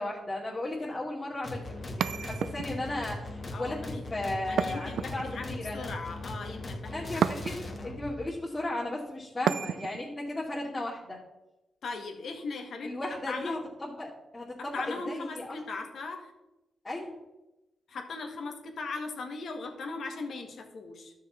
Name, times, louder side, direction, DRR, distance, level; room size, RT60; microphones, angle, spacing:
voice 1, 0.0-3.8 4.1-5.9 6.9-11.2 12.8-15.6 16.8-17.2, left 2 dB, 25° left, -6 dB, 2.5 m, -35 dB
sound 1, 1.4-8.1, left 2 dB, 40° left, 1.8 m, -39 dB
sound 2, 2.0-2.9 4.6-5.5 7.2-7.8 9.5-10.1, right 8 dB, 80° right, 0.3 m, -31 dB
voice 2, 3.5-4.0 4.5-7.1 11.8-12.9 13.3-13.6 14.6-16.3 17.9-21.1, left 3 dB, 70° left, 4 dB, 1.8 m, -38 dB
12.5 x 6.5 x 4.4 m, 0.98 s
cardioid pair, 85°, 0 cm